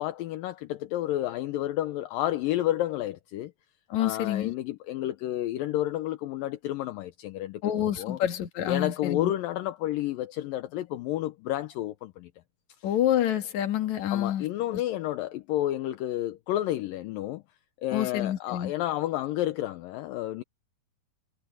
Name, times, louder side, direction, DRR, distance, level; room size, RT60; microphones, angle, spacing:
voice 1, 0.0-3.5 4.0-7.6 8.0-8.2 8.7-12.3 14.1-17.4 17.8-20.4, left 14 dB, 75° left, 2.3 m, -30 dB
voice 2, 3.9-4.5 7.6-9.3 12.8-14.5 14.7-14.8 17.9-18.7, left 11 dB, 55° left, 2.7 m, -27 dB
omnidirectional pair, 4.4 m